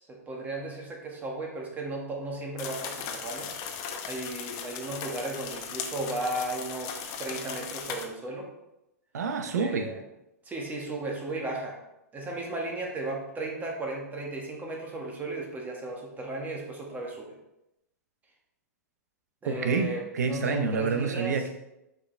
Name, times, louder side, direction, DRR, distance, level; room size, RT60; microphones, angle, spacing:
voice 1, 0.1-3.5 4.0-8.5 9.5-10.0 10.4-11.8 12.1-17.3 19.4-21.3, right 2 dB, 20° right, -1 dB, 1.7 m, -35 dB
sound 1, 2.6-8.1, left 7 dB, 40° left, 0.9 m, -37 dB
voice 2, 9.1-9.9 19.5-21.5, right 4 dB, 80° right, 7 dB, 0.9 m, -28 dB
6.8 x 5.1 x 3.4 m, 0.89 s
hypercardioid pair, 120°, 9 cm